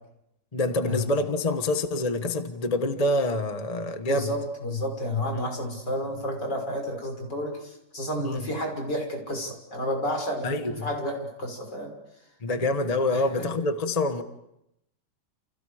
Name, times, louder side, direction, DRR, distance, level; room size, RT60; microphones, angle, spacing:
voice 1, 0.5-4.3 5.3-5.5 8.2-8.4 10.4-10.9 12.4-14.2, left 2 dB, 25° left, 1.1 m, -26 dB
voice 2, 4.1-11.9 13.1-13.5, left 1 dB, 60° left, 6.5 m, -31 dB
30.0 x 29.5 x 5.0 m
omnidirectional pair, 2.1 m